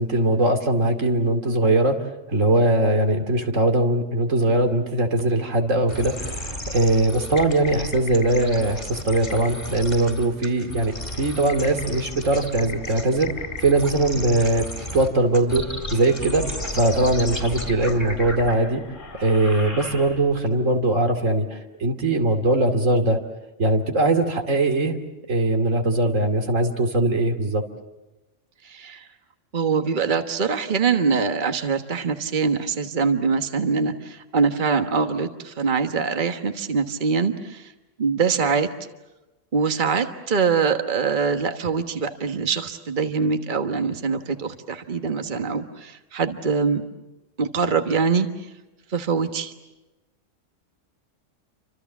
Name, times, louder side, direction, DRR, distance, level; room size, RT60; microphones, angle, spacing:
voice 1, 0.0-2.0 2.3-14.7 14.9-16.5 16.7-18.8 19.2-23.2 23.6-25.0 25.3-27.6, right 2 dB, 90° right, 5 dB, 2.9 m, -21 dB
sound 1, 5.9-20.4, left 1 dB, 40° left, 4.5 m, -33 dB
voice 2, 28.6-29.1 29.5-37.7 38.0-38.7 39.5-46.8 47.4-48.3 48.9-49.5, right 5 dB, 40° right, 7 dB, 1.5 m, -23 dB
29.5 x 26.0 x 7.2 m, 1.1 s
omnidirectional pair, 1.3 m